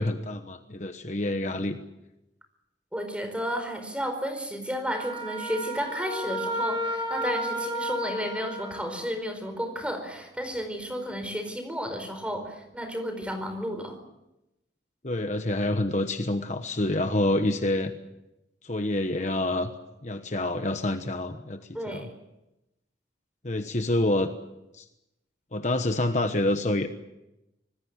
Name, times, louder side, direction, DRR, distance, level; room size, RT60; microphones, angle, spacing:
voice 1, 0.0-1.8 15.0-17.9 18.6-19.7 20.0-21.6 21.9-22.1 23.4-24.3 24.7-24.8 25.5-26.9, left 1 dB, 40° left, 7 dB, 1.2 m, -27 dB
voice 2, 2.9-14.0 21.7-22.1, equal, 5° right, 7 dB, 4.6 m, -32 dB
Wind instrument woodwind instrument, 4.9-9.0, equal, 25° right, 4.9 m, -32 dB
26.0 x 20.0 x 8.1 m, 0.93 s
head